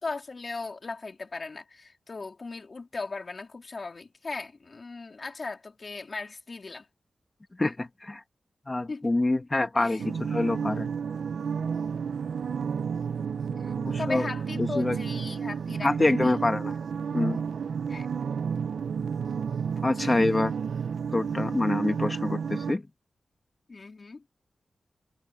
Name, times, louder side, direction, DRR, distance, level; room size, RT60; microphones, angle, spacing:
voice 1, 0.0-6.9 8.9-9.1 9.8-10.0 13.5-16.4 17.9-18.1 19.9-20.2 23.7-24.2, left 3 dB, 40° left, 3.6 m, -38 dB
voice 2, 7.6-8.2 8.7-10.9 13.8-14.3 14.6-15.0 15.8-16.7 17.1-17.4 19.8-20.5 21.1-22.8, left 2 dB, 20° left, 1.8 m, -26 dB
sound 1, 10.0-22.7, right 6 dB, 90° right, 0.6 m, -31 dB
wide cardioid pair, 155°, 0 cm